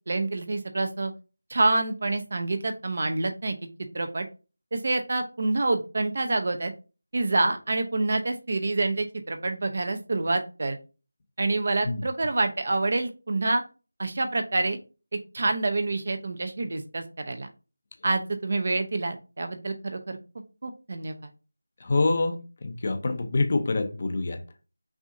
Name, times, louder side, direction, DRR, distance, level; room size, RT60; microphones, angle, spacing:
voice 1, 0.1-1.1 1.5-3.6 3.9-4.3 4.7-6.7 7.1-10.8 11.4-13.6 14.0-14.8 15.3-17.5 18.0-20.2 20.6-21.2, right 2 dB, 45° right, 0.7 m, -27 dB
voice 2, 21.8-24.4, left 3 dB, 35° left, 0.7 m, -26 dB
6.0 x 2.7 x 2.6 m
figure-of-eight pair, 170°, 0 cm